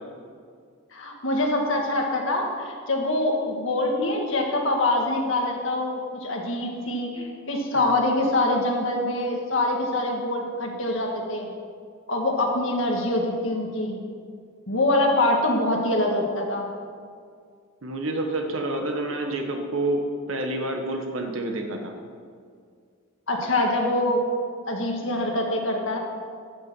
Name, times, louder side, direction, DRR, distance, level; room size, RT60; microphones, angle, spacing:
voice 1, 0.9-11.5 12.1-14.0 14.7-16.7 23.3-24.2 24.7-26.0, left 1 dB, 65° left, 1 dB, 1.8 m, -24 dB
voice 2, 17.8-20.0 20.3-21.9, right 2 dB, 70° right, 3 dB, 1.3 m, -28 dB
11.5 x 6.8 x 7.6 m, 2.1 s
head